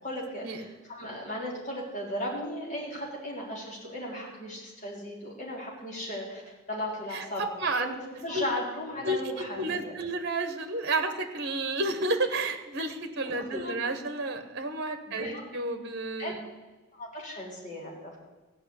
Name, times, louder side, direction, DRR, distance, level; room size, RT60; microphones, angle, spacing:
voice 1, 0.0-7.4 7.8-7.9 8.2-9.9 13.2-13.8 15.1-15.4 16.2-16.3 16.9-18.2, left 1 dB, 35° left, -4 dB, 3.9 m, -36 dB
voice 2, 9.6-16.4, right 2 dB, 50° right, 7 dB, 1.2 m, -31 dB
15.0 x 5.7 x 9.6 m, 1.2 s
head